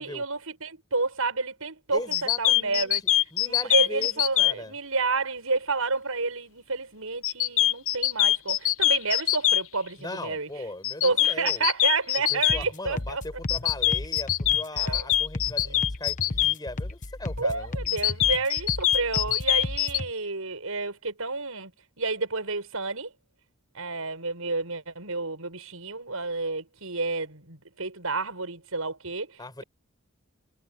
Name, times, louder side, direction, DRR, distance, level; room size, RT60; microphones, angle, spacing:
voice 1, 0.0-3.0 3.4-10.5 11.0-13.2 14.7-15.1 17.4-21.7 22.0-23.1 23.7-29.6, right 3 dB, 80° right, 6.2 m, -30 dB
voice 2, 1.9-2.9 3.3-4.7 10.0-11.7 12.3-18.0 29.4-29.6, left 2 dB, 20° left, 5.7 m, -39 dB
sound 1, 2.1-4.5 7.2-9.6 10.8-12.6 13.5-16.5 17.9-20.0, left 13 dB, 70° left, 0.9 m, -23 dB
sound 2, 12.5-20.1, left 2 dB, 35° left, 1.0 m, -35 dB
head